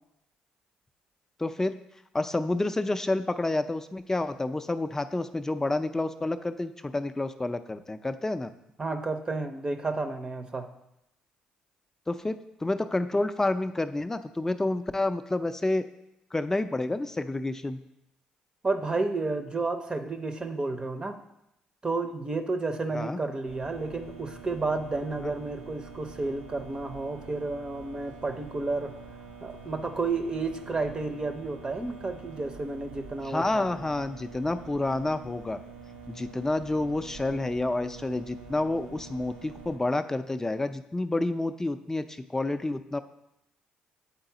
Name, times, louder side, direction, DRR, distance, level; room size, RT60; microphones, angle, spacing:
voice 1, 1.4-1.8 2.1-8.5 12.1-15.9 16.3-17.8 22.9-23.2 25.2-25.3 33.2-35.6 36.1-43.0, left 2 dB, 15° left, 10 dB, 0.4 m, -29 dB
voice 2, 8.8-10.7 18.6-21.2 21.8-28.9 29.4-33.7, right 3 dB, 30° right, 7 dB, 0.6 m, -31 dB
sound 1, 23.5-39.7, right 4 dB, 85° right, 1.1 m, -46 dB
8.2 x 4.0 x 3.9 m, 0.83 s
supercardioid pair, 60°, 3 cm